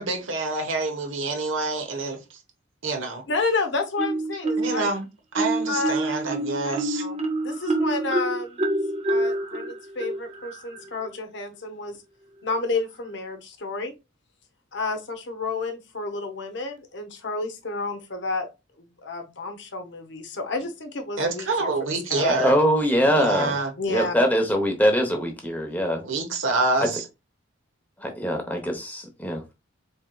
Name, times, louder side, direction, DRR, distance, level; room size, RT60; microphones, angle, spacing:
voice 1, 0.0-2.2 2.8-3.2 4.6-5.1 5.3-7.0 21.2-22.5 23.2-23.7 26.0-27.0, right 3 dB, 75° right, 1.1 m, -26 dB
voice 2, 3.3-4.9 5.7-6.0 6.6-8.6 9.1-12.0 12.4-13.9 14.7-18.5 18.8-21.7 22.1-22.3 23.8-24.1, left 3 dB, 60° left, 0.8 m, -30 dB
Marimba xylophone, 4.0-4.9 5.3-10.9, right 2 dB, 30° right, 0.5 m, -27 dB
voice 3, 22.3-23.6 23.9-26.1 26.8-26.9 28.0-29.5, equal, 10° left, 0.7 m, -23 dB
4.3 x 3.4 x 2.2 m
head